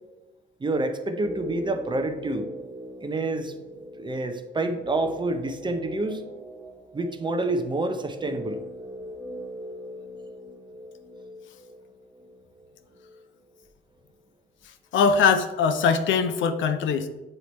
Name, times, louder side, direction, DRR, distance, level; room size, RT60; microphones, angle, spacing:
voice 1, 0.6-2.5 3.0-3.5 4.0-6.2 6.9-8.6, right 2 dB, 25° right, 7 dB, 0.6 m, -28 dB
sound 1, 1.1-13.2 13.5-13.6, equal, 5° right, 1.3 m, -41 dB
voice 2, 14.9-17.1, left 6 dB, 75° left, 9 dB, 0.5 m, -21 dB
7.7 x 3.0 x 4.0 m, 1.1 s
cardioid pair, 90°, 20 cm